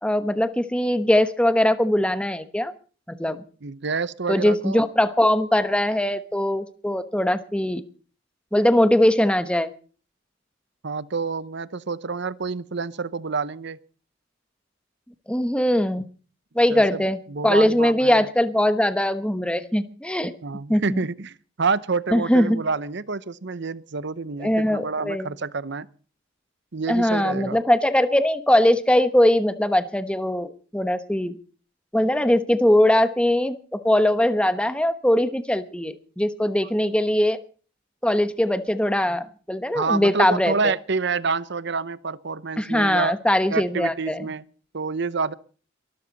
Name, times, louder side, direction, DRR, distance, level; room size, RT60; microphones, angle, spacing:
voice 1, 0.0-2.7 3.1-3.4 4.3-7.8 8.5-9.7 15.3-16.0 16.5-17.2 17.4-20.3 20.7-21.0 22.1-22.6 24.4-25.3 26.9-31.4 31.9-37.4 38.0-40.7 42.6-44.2, left 1 dB, 5° left, 1.1 m, -21 dB
voice 2, 3.6-4.8 10.8-13.8 16.7-18.3 20.4-25.9 26.7-27.6 39.7-43.2 43.5-44.4 44.7-45.3, right 4 dB, 65° right, 0.9 m, -28 dB
23.0 x 13.5 x 4.1 m
head